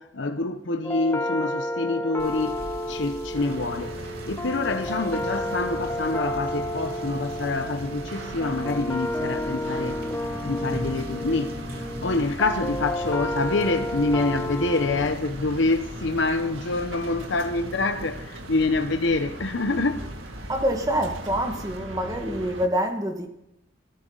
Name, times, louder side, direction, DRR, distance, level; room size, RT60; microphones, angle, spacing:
voice 1, 0.0-2.6 2.9-4.0 4.3-10.0 10.4-20.1, left 3 dB, 70° left, 1.0 m, -26 dB
sound 1, 0.8-15.1, left 1 dB, 10° left, 0.6 m, -31 dB
Rain / Motor vehicle (road), 2.2-21.8, right 1 dB, 50° right, 3.2 m, -43 dB
sound 2, 3.3-22.7, right 1 dB, 85° right, 2.1 m, -39 dB
voice 2, 20.5-23.3, equal, 20° right, 1.8 m, -26 dB
28.5 x 10.5 x 4.0 m
head